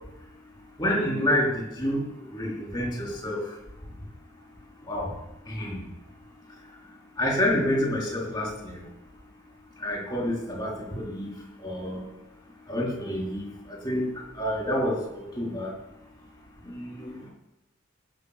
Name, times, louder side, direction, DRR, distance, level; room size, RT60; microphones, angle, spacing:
voice 1, 0.8-2.0 2.3-3.4 4.9-5.1 5.5-5.8 7.2-8.8 9.8-11.3 11.6-12.0 12.7-14.1 14.3-15.7 16.6-17.3, left 1 dB, 20° left, -3 dB, 4.0 m, -28 dB
18.5 x 6.3 x 6.8 m, 0.94 s
head